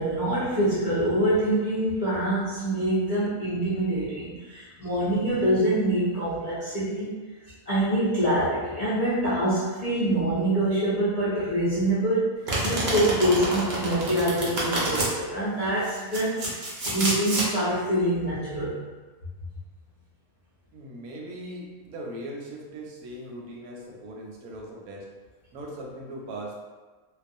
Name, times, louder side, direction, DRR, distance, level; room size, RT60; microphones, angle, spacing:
voice 1, 0.0-7.2 7.7-12.3 12.6-18.7, right 1 dB, 45° left, -12 dB, 0.5 m, -25 dB
Domestic sounds home sounds, 12.5-15.1 15.8-17.5, right 1 dB, 60° right, 0.5 m, -28 dB
voice 2, 20.7-25.1 25.5-26.5, right 1 dB, 90° right, -1 dB, 1.0 m, -39 dB
2.3 x 2.2 x 2.6 m, 1.3 s
omnidirectional pair, 1.5 m